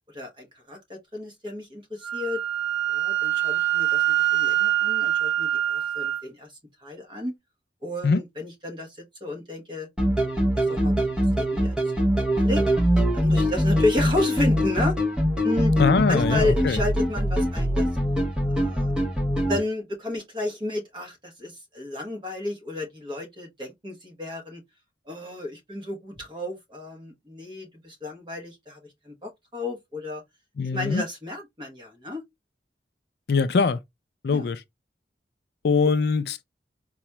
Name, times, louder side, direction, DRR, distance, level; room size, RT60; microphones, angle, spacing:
voice 1, 0.1-2.4 2.9-4.0 4.3-6.5 6.8-7.3 7.8-9.9 10.5-10.9 11.4-11.9 12.4-12.6 13.1-15.0 15.4-15.8 16.1-17.9 18.4-18.9 19.5-24.6 25.0-30.2 30.6-32.2 34.3-34.5, left 2 dB, 25° right, 1.1 m, -32 dB
Wind instrument woodwind instrument, 2.0-6.2, right 13 dB, 75° right, 0.9 m, -24 dB
sound 1, 10.0-19.6, equal, 5° right, 0.6 m, -23 dB
voice 2, 15.8-16.8 30.6-31.0 33.3-33.8 34.2-34.6 35.6-36.4, left 4 dB, 60° left, 0.3 m, -22 dB
4.0 x 2.3 x 2.9 m
head